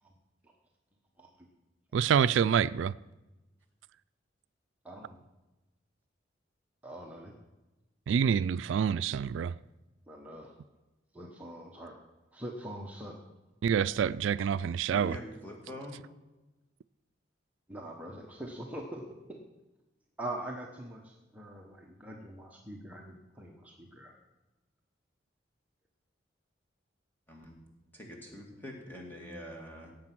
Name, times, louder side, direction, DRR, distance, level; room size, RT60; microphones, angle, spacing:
voice 1, 1.9-2.9 8.1-9.5 13.6-15.2, right 7 dB, 80° right, 0.3 m, -27 dB
voice 2, 4.8-5.2 6.8-7.3 10.1-10.5 11.1-12.0 12.3-13.2 17.7-19.0 19.3-19.4 20.2-24.2, right 1 dB, 10° right, 1.1 m, -43 dB
voice 3, 14.9-16.0 27.3-27.6 27.9-29.9, equal, 10° left, 2.4 m, -44 dB
17.0 x 8.0 x 6.0 m
head